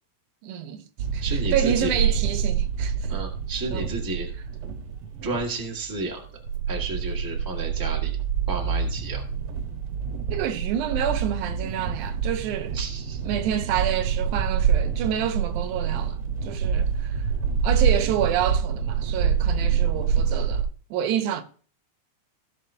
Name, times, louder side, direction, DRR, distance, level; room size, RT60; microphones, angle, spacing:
voice 1, 0.4-0.9 1.1-3.1 3.7-3.9 10.3-12.8 13.2-17.3 17.6-21.4, right 9 dB, 90° right, 2.3 m, -28 dB
sound 1, 1.0-20.6, right 7 dB, 60° right, 1.9 m, -26 dB
voice 2, 1.2-1.9 3.1-4.3 5.2-6.2 6.7-8.2 8.5-9.2 12.7-13.2, right 2 dB, 10° right, 1.0 m, -32 dB
16.5 x 6.2 x 2.7 m
omnidirectional pair, 3.4 m